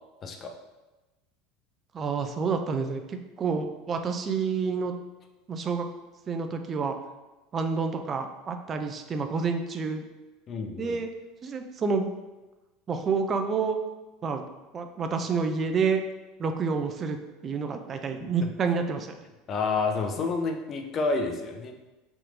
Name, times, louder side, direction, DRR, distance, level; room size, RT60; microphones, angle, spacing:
voice 1, 0.2-0.5 10.5-11.0 19.5-21.7, left 4 dB, 35° left, 4 dB, 0.4 m, -29 dB
voice 2, 1.9-4.9 5.5-5.9 6.3-6.9 7.5-10.0 10.8-11.1 11.4-12.1 12.9-13.8 14.2-14.4 14.7-16.0 16.4-17.2 17.4-19.1, right 5 dB, 30° right, 6 dB, 0.3 m, -28 dB
3.4 x 2.7 x 2.6 m, 1.1 s
figure-of-eight pair, 70°, 0 cm